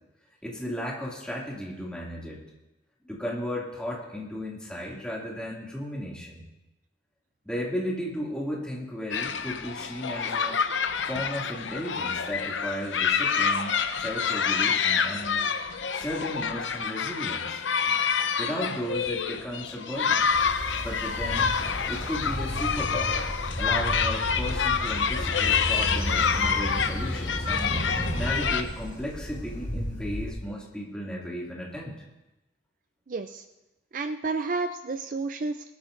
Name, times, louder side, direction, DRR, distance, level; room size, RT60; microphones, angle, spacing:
voice 1, 0.4-2.5 3.0-6.4 7.4-10.6 11.1-15.4 15.9-17.6 18.4-20.3 20.8-21.5 21.9-23.3 23.6-27.7 28.2-32.0, equal, 5° left, -4 dB, 2.3 m, -35 dB
sound 1, 9.1-28.6, left 6 dB, 85° left, 0.7 m, -27 dB
Train, 20.3-30.3, equal, 25° left, 4.4 m, -33 dB
voice 2, 33.1-33.4 33.9-35.7, right 3 dB, 45° right, 8 dB, 0.4 m, -31 dB
20.5 x 12.5 x 2.6 m, 0.98 s
head